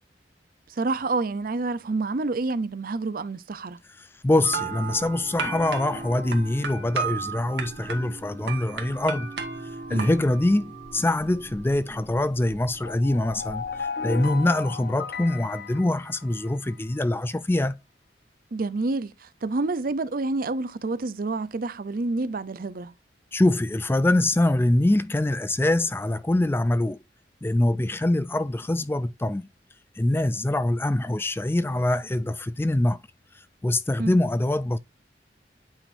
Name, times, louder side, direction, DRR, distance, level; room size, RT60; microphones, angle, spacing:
voice 1, 0.8-3.8 9.9-10.1 18.5-22.9 34.0-34.1, right 3 dB, 55° right, 0.5 m, -28 dB
voice 2, 4.0-9.3 9.9-17.7 23.3-27.0 27.4-29.5 30.0-33.0 33.6-34.8, left 1 dB, 15° left, 0.4 m, -24 dB
sound 1, 4.4-13.8, right 4 dB, 75° right, 1.6 m, -35 dB
sound 2, 12.8-16.8, left 5 dB, 60° left, 0.7 m, -35 dB
9.0 x 5.0 x 2.6 m
head